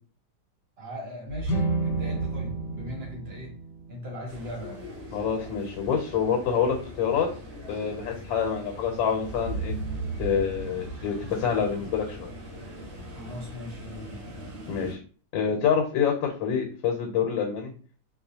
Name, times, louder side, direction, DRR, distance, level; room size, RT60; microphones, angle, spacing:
voice 1, 0.8-3.6 3.9-4.8 13.1-14.3, left 1 dB, 40° right, -1 dB, 0.9 m, -39 dB
sound 1, 1.3-4.2 9.2-12.4, right 4 dB, 70° right, 0.9 m, -35 dB
sound 2, 1.4-4.7, right 2 dB, 65° left, 1.2 m, -32 dB
sound 3, 4.3-14.9, left 1 dB, 90° right, 1.9 m, -42 dB
voice 2, 5.1-7.3 7.7-9.7 10.2-12.3 14.7-15.0 15.3-17.7, left 7 dB, 85° left, 2 dB, 1.4 m, -27 dB
4.3 x 2.4 x 2.7 m, 0.41 s
omnidirectional pair, 2.0 m